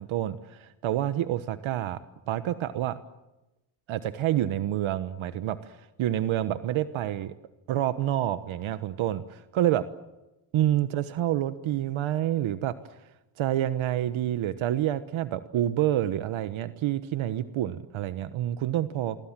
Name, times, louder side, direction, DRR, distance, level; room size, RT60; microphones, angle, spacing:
voice 1, 0.0-2.0 2.3-3.0 3.9-5.6 6.0-7.3 7.7-9.8 10.5-12.7 13.4-19.2, right 12 dB, 70° right, 12 dB, 1.3 m, -28 dB
27.5 x 23.0 x 7.5 m, 1.0 s
cardioid pair, 120°, 49 cm